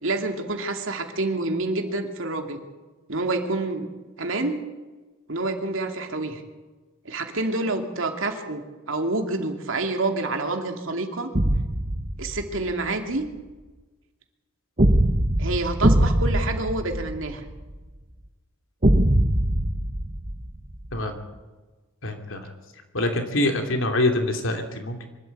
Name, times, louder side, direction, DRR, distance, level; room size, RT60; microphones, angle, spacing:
voice 1, 0.0-2.6 3.1-3.9 4.2-4.6 5.3-6.4 7.0-8.6 8.9-11.3 12.2-13.3 15.4-17.5, right 2 dB, 70° right, 4 dB, 2.5 m, -27 dB
sound 1, 11.3-12.7 14.8-17.7 18.8-21.0, right 1 dB, 35° right, 1.5 m, -22 dB
voice 2, 22.0-22.5 22.9-25.0, left 1 dB, 65° left, 4 dB, 3.0 m, -25 dB
24.0 x 13.0 x 8.3 m, 1.2 s
head